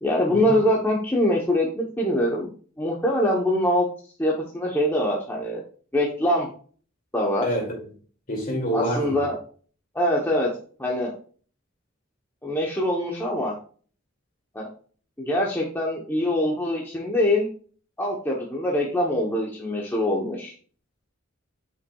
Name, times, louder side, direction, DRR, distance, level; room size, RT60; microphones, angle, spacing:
voice 1, 0.0-3.9 4.2-5.6 5.9-6.5 7.1-7.5 8.7-9.4 9.9-10.5 10.8-11.1 12.4-13.6 14.5-14.7 15.2-17.5 18.0-20.5, left 1 dB, 10° left, 0.9 m, -24 dB
voice 2, 7.4-7.8 8.3-9.3, equal, 40° left, 2.4 m, -27 dB
8.2 x 5.7 x 2.3 m
head